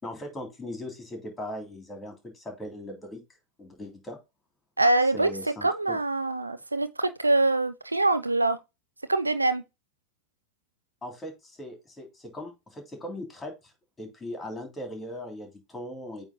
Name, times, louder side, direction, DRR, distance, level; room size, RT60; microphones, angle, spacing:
voice 1, 0.0-3.2 3.6-4.2 5.1-6.0 11.0-13.7 14.0-16.2, left 1 dB, 15° left, 3.1 m, -39 dB
voice 2, 4.8-8.6 9.1-9.6, right 2 dB, 85° right, 0.5 m, -24 dB
8.7 x 3.2 x 3.8 m
figure-of-eight pair, 85°, 0 cm